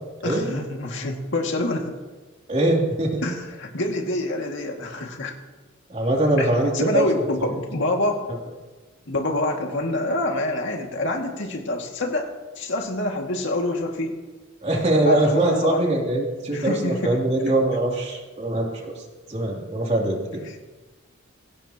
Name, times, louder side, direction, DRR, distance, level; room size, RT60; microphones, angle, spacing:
voice 1, 0.2-1.9 3.2-5.3 6.4-8.3 9.1-14.2 15.0-15.9 16.5-17.2 20.4-20.6, left 1 dB, 60° left, 2 dB, 2.1 m, -26 dB
voice 2, 2.5-3.2 5.9-7.1 7.4-7.5 14.6-18.9 19.3-20.4, right 1 dB, 35° right, -1 dB, 3.0 m, -22 dB
23.0 x 16.5 x 3.0 m, 1.3 s
head